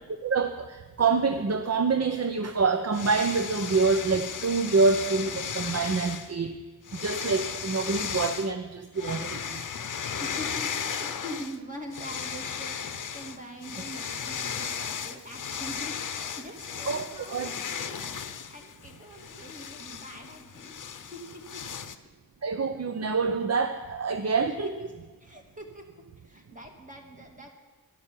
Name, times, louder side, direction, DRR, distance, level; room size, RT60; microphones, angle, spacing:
voice 1, 0.2-6.6 6.9-9.6 16.9-17.1 17.3-17.5 22.4-24.7, right 4 dB, 40° right, 8 dB, 0.7 m, -26 dB
sound 1, 2.9-6.3 6.8-8.5 9.0-11.6 11.9-21.9, left 7 dB, 50° left, 0.8 m, -36 dB
voice 2, 10.2-21.6 24.4-24.5 24.8-24.9 25.2-25.9 26.2-27.5, equal, 20° right, 1 dB, 2.2 m, -43 dB
11.5 x 11.0 x 7.5 m, 1.3 s
wide cardioid pair, 85°, 39 cm